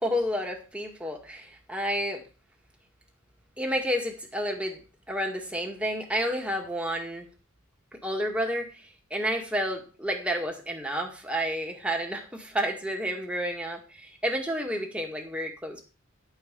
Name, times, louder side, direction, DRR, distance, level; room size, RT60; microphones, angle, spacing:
voice 1, 0.0-2.2 3.6-4.8 5.1-7.3 8.0-8.9 9.1-15.8, equal, 5° right, 2 dB, 2.1 m, -30 dB
11.5 x 5.7 x 7.0 m, 0.34 s
head